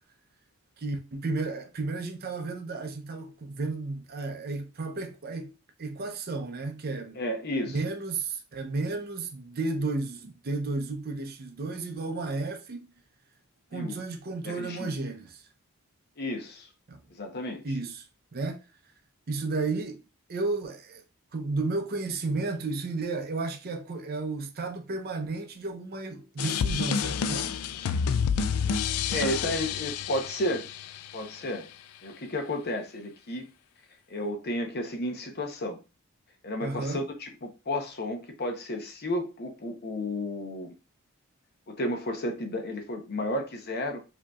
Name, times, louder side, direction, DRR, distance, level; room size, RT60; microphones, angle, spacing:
voice 1, 0.8-7.2 7.7-12.9 13.7-15.5 16.9-17.0 17.6-18.1 18.3-18.6 19.3-20.0 20.3-21.0 21.3-27.6 36.6-37.0, right 3 dB, 45° right, 0.5 m, -33 dB
voice 2, 7.1-7.8 13.7-14.0 14.4-14.9 16.2-16.7 17.1-17.6 29.1-30.7 31.1-31.7 32.0-33.5 34.1-35.8 36.4-40.7 41.7-44.0, left 1 dB, 45° left, 0.8 m, -32 dB
sound 1, 26.4-31.3, left 7 dB, 80° left, 0.3 m, -29 dB
5.0 x 2.8 x 2.3 m
head